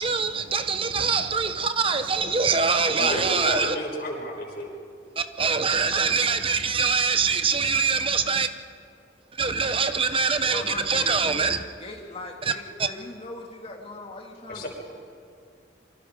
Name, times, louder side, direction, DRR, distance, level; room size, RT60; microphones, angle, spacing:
voice 1, 0.0-3.8 5.2-8.5 9.3-11.6 12.4-12.5 12.8-12.9, right 5 dB, 30° right, 0.9 m, -24 dB
voice 2, 2.9-4.7 14.5-14.7, equal, 55° left, 6.5 m, -31 dB
voice 3, 10.4-14.7, left 2 dB, 35° left, 2.5 m, -40 dB
27.5 x 24.5 x 5.2 m
head